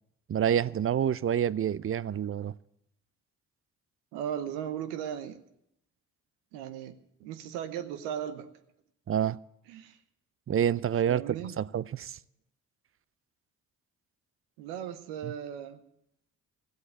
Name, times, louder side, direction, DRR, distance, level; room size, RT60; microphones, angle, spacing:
voice 1, 0.3-2.5 9.1-9.4 10.5-11.2 11.6-12.2 15.2-15.3, right 9 dB, 35° right, 0.6 m, -27 dB
voice 2, 4.1-5.4 6.5-8.5 9.7-10.0 11.1-11.5 14.6-15.8, right 9 dB, 85° right, 1.0 m, -37 dB
14.5 x 8.0 x 9.2 m
hypercardioid pair, 45°, 37 cm